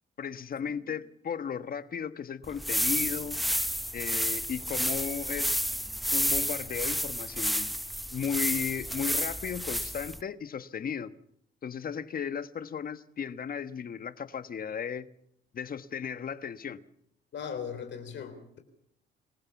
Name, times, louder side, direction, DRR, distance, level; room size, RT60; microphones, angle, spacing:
voice 1, 0.2-3.4 3.9-5.6 6.1-7.7 8.1-11.1 11.6-15.1 15.5-16.8, left 7 dB, 45° left, 1.3 m, -35 dB
sound 1, 2.4-10.2, equal, ahead, 1.0 m, -31 dB
voice 2, 17.3-18.6, left 7 dB, 65° left, 3.7 m, -38 dB
26.5 x 15.5 x 7.1 m
cardioid pair, 90°, 20 cm